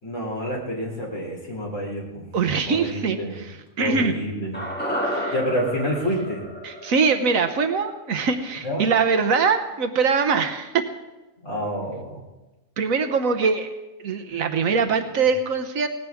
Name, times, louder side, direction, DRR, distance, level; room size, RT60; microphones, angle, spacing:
voice 1, 0.0-2.3 2.6-3.3 3.8-4.6 5.3-6.4 8.6-8.9 11.4-12.2 14.3-14.4 14.7-14.8, equal, 60° left, -2 dB, 3.7 m, -28 dB
voice 2, 2.3-4.1 5.0-5.4 6.6-10.8 12.8-13.7 14.0-15.9, right 5 dB, 75° right, 7 dB, 1.3 m, -23 dB
sound 1, 4.5-8.8 9.1-9.2, equal, 5° left, 1.5 m, -32 dB
18.5 x 15.5 x 3.6 m, 1.1 s
omnidirectional pair, 1.4 m